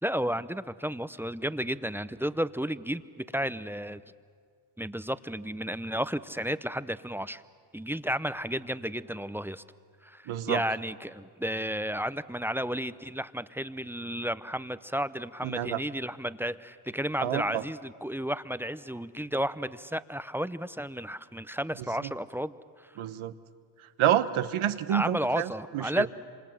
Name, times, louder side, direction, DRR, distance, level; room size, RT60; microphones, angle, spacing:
voice 1, 0.0-4.0 4.8-7.4 7.7-9.6 10.0-22.9 24.9-26.1, equal, 5° right, 13 dB, 0.7 m, -32 dB
voice 2, 10.3-10.6 15.4-15.8 17.2-17.6 22.0-22.1 23.0-23.4 23.8-26.1, right 11 dB, 75° right, 11 dB, 1.2 m, -28 dB
27.0 x 25.5 x 7.7 m, 2.1 s
cardioid pair, 65°, 49 cm